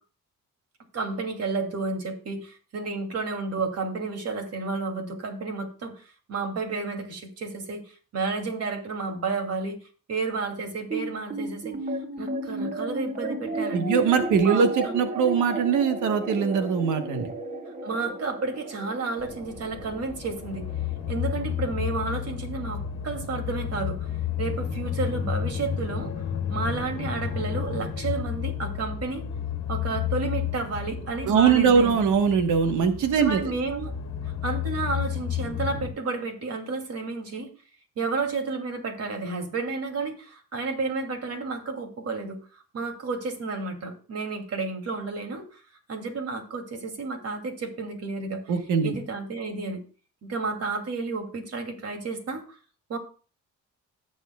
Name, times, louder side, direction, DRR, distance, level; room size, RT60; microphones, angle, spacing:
voice 1, 0.9-9.8 10.1-11.8 12.2-13.9 14.4-14.9 17.8-20.6 21.1-24.1 24.4-29.2 29.7-31.9 33.2-33.9 34.4-37.5 38.0-45.6 45.9-48.5 48.8-49.8 50.2-52.6 52.9-53.0, right 4 dB, 55° right, 4 dB, 2.7 m, -31 dB
sound 1, 10.9-23.5, right 2 dB, 25° right, 2.2 m, -34 dB
voice 2, 13.7-17.3 31.3-33.4 48.5-48.9, right 6 dB, 80° right, 7 dB, 1.3 m, -22 dB
sound 2, 19.2-35.9, left 9 dB, 60° left, 1.4 m, -32 dB
17.5 x 7.1 x 2.3 m, 0.37 s
cardioid pair, 90°, 30 cm